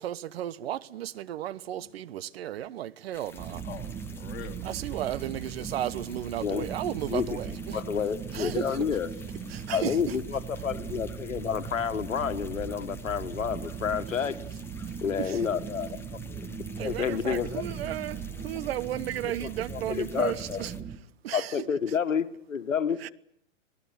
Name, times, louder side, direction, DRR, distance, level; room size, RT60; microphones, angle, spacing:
voice 1, 0.0-3.6 4.6-7.8 8.3-8.6 9.5-10.1 15.2-15.4 16.8-20.7 21.2-21.7 23.0-23.1, right 12 dB, 50° right, 1.1 m, -34 dB
sound 1, 1.4-1.5 1.8-2.1 2.6-3.6 4.1-5.2 5.6-6.6 7.0-7.4 7.7-8.1 8.5-9.5 9.9-10.2 10.6-10.9 11.3-11.6 12.1-12.3 12.8-13.1 13.4-13.8 14.3-14.6 14.8-15.2 15.7-16.1 16.4-16.7 17.1-17.4 17.6-18.0 18.6-18.8 19.1-19.2, left 7 dB, 35° left, 6.7 m, -58 dB
sound 2, 3.1-20.8, left 3 dB, 5° left, 1.5 m, -52 dB
sound 3, 3.4-21.0, right 6 dB, 15° right, 1.6 m, -39 dB
voice 2, 3.6-4.7 16.2-16.6, left 9 dB, 55° left, 2.9 m, -45 dB
voice 3, 7.1-9.1 9.7-14.3 15.0-16.0 16.3-16.5 16.8-17.6 19.4-20.6 21.3-23.0, left 7 dB, 90° left, 1.8 m, -30 dB
27.0 x 18.5 x 9.9 m
hypercardioid pair, 135°, 38 cm